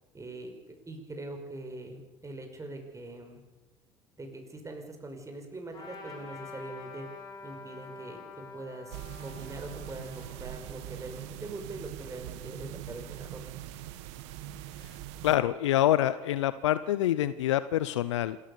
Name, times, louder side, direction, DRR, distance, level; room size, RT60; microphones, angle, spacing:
voice 1, 0.1-0.5 0.9-3.4 4.2-7.1 7.4-8.2 8.5-13.4, right 2 dB, 20° right, 4 dB, 5.7 m, -42 dB
Trumpet, 5.7-11.6, left 4 dB, 30° left, 7.0 m, -47 dB
sound 1, 8.9-15.4, right 12 dB, 70° right, 1.4 m, -42 dB
voice 2, 15.2-18.4, left 13 dB, 85° left, 15 dB, 0.6 m, -26 dB
26.5 x 14.5 x 6.8 m, 1.1 s
hypercardioid pair, 65°, 15 cm